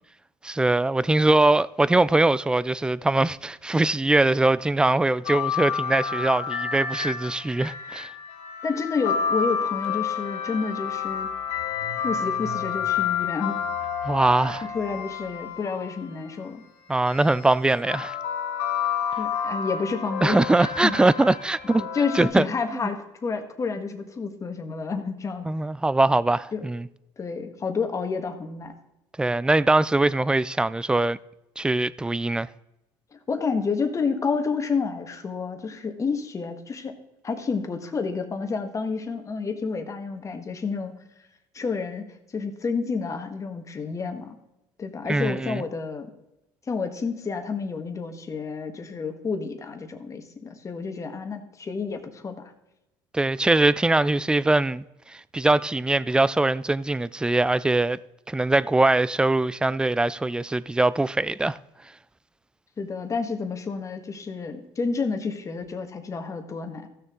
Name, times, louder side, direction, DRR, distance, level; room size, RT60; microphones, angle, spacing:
voice 1, 0.4-8.1 14.0-14.7 16.9-18.2 20.2-21.8 22.1-22.4 22.7-22.9 25.4-26.9 29.2-31.2 31.6-32.5 45.1-45.6 53.1-58.0 58.3-61.6, right 2 dB, 10° right, 0.3 m, -22 dB
sound 1, 5.2-16.1 17.1-22.3, left 7 dB, 80° left, 1.4 m, -30 dB
voice 2, 8.6-11.3 12.0-13.6 14.7-16.6 19.2-20.9 21.6-25.5 26.5-26.6 27.2-28.7 33.3-37.0 37.2-40.9 41.5-42.0 42.3-44.4 44.8-46.1 46.7-52.5 62.8-66.9, left 5 dB, 30° left, 1.5 m, -30 dB
Car / Engine starting, 9.8-9.9 10.2-15.5, right 8 dB, 75° right, 1.2 m, -46 dB
15.0 x 6.6 x 3.7 m
cardioid pair, 105°, 11 cm